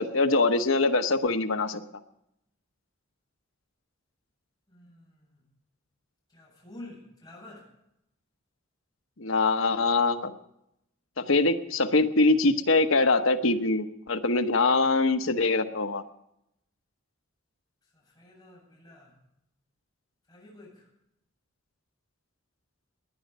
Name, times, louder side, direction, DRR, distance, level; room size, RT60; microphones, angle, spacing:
voice 1, 0.0-1.8 9.2-10.3 11.2-16.0, left 3 dB, 80° left, 8 dB, 1.1 m, -23 dB
voice 2, 4.7-5.4 6.3-7.7 17.9-19.1 20.3-20.9, left 1 dB, 20° left, -4 dB, 8.0 m, -49 dB
19.5 x 10.5 x 5.4 m, 0.80 s
head